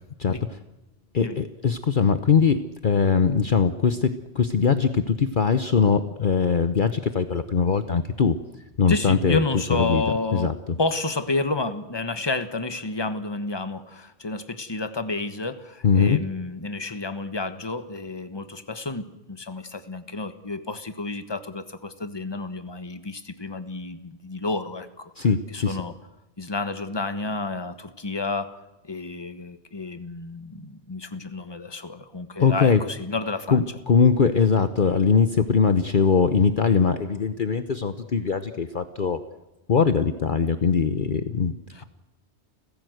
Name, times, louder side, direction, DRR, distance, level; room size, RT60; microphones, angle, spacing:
voice 1, 0.2-0.6 1.1-8.4 8.8-9.4 9.7-10.0 10.3-10.8 15.8-16.2 25.2-25.8 32.4-32.8 33.5-39.2 39.7-41.5, left 5 dB, 50° left, 10 dB, 1.1 m, -21 dB
voice 2, 8.9-10.5 10.8-25.3 25.5-25.9 26.4-28.5 28.8-33.6 41.7-41.8, left 3 dB, 25° left, 10 dB, 1.3 m, -30 dB
30.0 x 16.0 x 7.9 m, 1.0 s
omnidirectional pair, 1.2 m